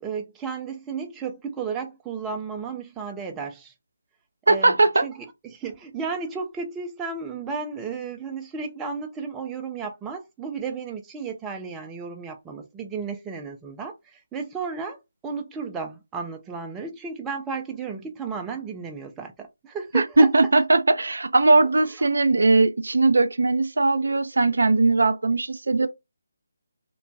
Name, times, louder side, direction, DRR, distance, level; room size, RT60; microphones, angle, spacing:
voice 1, 0.0-3.7 4.5-20.3 21.6-21.7, right 5 dB, 10° right, 0.3 m, -33 dB
voice 2, 4.5-5.1 19.9-25.9, right 3 dB, 75° right, 0.4 m, -19 dB
2.9 x 2.2 x 2.5 m
figure-of-eight pair, 155°, 0 cm